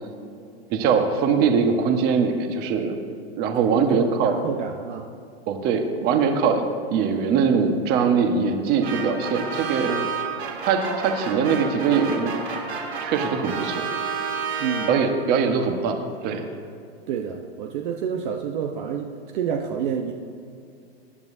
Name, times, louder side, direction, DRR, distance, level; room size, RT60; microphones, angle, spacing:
voice 1, 0.7-2.9 3.4-4.4 5.5-6.6 6.9-10.0 10.7-12.3 13.0-13.9 14.9-16.5, right 6 dB, 30° right, 4 dB, 1.4 m, -22 dB
voice 2, 3.6-5.1 14.6-15.0 17.1-20.1, right 7 dB, 50° right, 2 dB, 1.1 m, -28 dB
sound 1, 8.8-15.4, right 5 dB, 90° right, 3.2 m, -30 dB
24.0 x 10.5 x 2.8 m, 2.4 s
hypercardioid pair, 145°, 31 cm